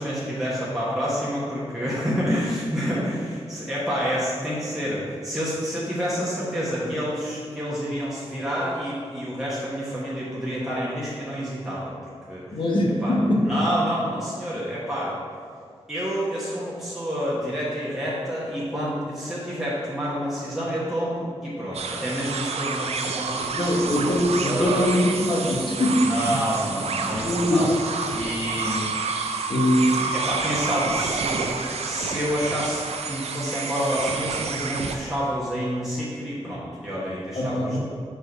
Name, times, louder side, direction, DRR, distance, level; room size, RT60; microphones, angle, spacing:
voice 1, 0.0-11.9 12.3-12.4 13.0-15.2 15.9-23.9 24.4-24.9 26.0-27.7 28.1-28.9 30.1-32.8 33.1-37.8, equal, 5° right, -8 dB, 1.3 m, -28 dB
voice 2, 12.5-13.5 23.6-26.4 27.0-27.7 29.5-29.9 37.3-37.8, left 1 dB, 50° left, -2 dB, 1.2 m, -22 dB
sound 1, 21.7-35.0, right 4 dB, 80° right, 0.5 m, -29 dB
5.0 x 4.6 x 5.7 m, 2.1 s
wide cardioid pair, 80°, 11 cm